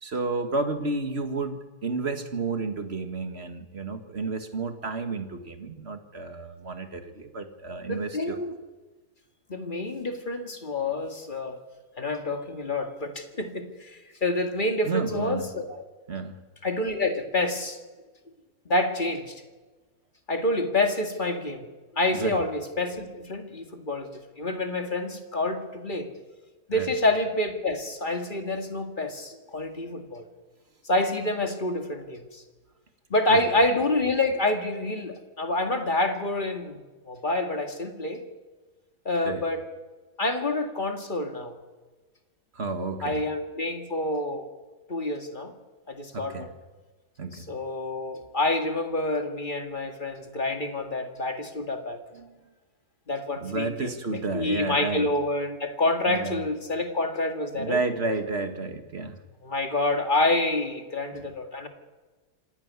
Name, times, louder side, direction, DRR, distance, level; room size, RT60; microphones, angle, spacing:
voice 1, 0.0-8.4 14.8-15.4 16.1-16.4 22.1-22.4 26.7-26.9 33.3-33.4 39.2-39.4 42.5-43.2 46.1-46.5 47.2-47.5 52.1-52.3 53.4-55.1 56.1-56.4 57.6-59.2 61.1-61.2, right 3 dB, 40° right, 7 dB, 2.0 m, -31 dB
voice 2, 7.9-8.5 9.5-11.6 12.0-15.8 16.6-17.8 18.7-19.4 20.3-21.7 21.9-26.1 26.7-30.3 30.8-32.4 33.1-36.8 37.1-38.2 39.1-39.6 40.2-41.6 43.0-44.5 44.9-45.5 45.9-46.5 47.3-52.0 53.1-53.9 54.3-57.8 59.4-61.7, left 2 dB, 30° left, 5 dB, 2.2 m, -27 dB
26.0 x 12.0 x 9.6 m, 1.3 s
omnidirectional pair, 1.7 m